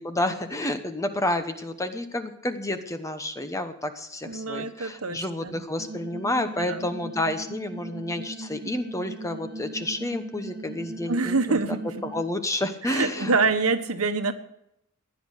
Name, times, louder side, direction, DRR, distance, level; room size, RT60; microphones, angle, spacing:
voice 1, 0.0-11.6 12.0-13.3, left 1 dB, 15° left, 8 dB, 1.0 m, -30 dB
voice 2, 4.3-5.6 6.6-6.9 11.1-11.9 12.8-14.3, right 4 dB, 70° right, 8 dB, 1.3 m, -26 dB
sound 1, 5.8-12.2, right 2 dB, 45° right, 1.6 m, -39 dB
16.0 x 10.5 x 6.6 m, 0.78 s
head